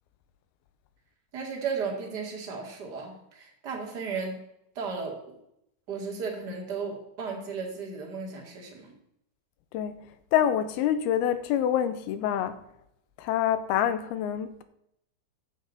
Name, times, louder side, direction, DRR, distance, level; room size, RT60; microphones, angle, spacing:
voice 1, 1.3-4.4 4.8-5.2 5.9-8.9, right 5 dB, 35° right, 1.9 m, -34 dB
voice 2, 10.3-12.6 13.2-14.6, left 10 dB, 90° left, 2.6 m, -26 dB
9.4 x 8.0 x 4.0 m
omnidirectional pair, 4.4 m